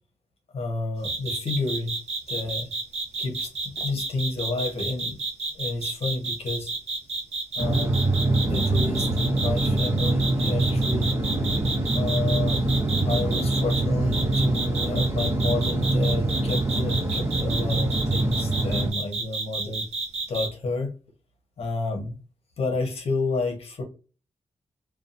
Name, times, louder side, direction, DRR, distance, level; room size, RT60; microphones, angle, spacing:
voice 1, 0.5-1.9 2.3-2.7 3.2-5.2 5.5-6.7 7.5-8.0 8.5-11.3 11.9-12.6 13.0-19.9 20.3-20.9 21.6-22.2 22.6-23.8, left 3 dB, 65° left, 2 dB, 0.9 m, -30 dB
sound 1, 1.0-13.8 14.1-20.5, right 3 dB, 90° right, 0.9 m, -30 dB
sound 2, 7.6-18.9, right 2 dB, 20° right, 0.9 m, -24 dB
2.6 x 2.3 x 2.5 m, 0.34 s
cardioid pair, 70°, 11 cm